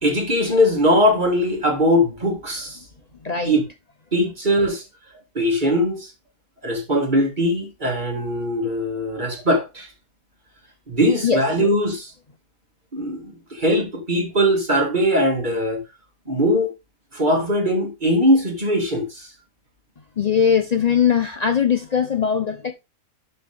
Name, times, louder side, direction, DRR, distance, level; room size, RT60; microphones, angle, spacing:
voice 1, 0.0-2.8 3.4-3.6 4.1-4.8 5.3-6.1 6.6-9.9 10.9-12.1 12.9-15.8 16.3-16.7 17.1-19.3, equal, 30° right, 2.3 m, -20 dB
voice 2, 3.2-3.6 11.2-11.4 20.2-22.7, left 7 dB, 80° left, 0.3 m, -20 dB
12.0 x 4.3 x 3.5 m
omnidirectional pair, 1.7 m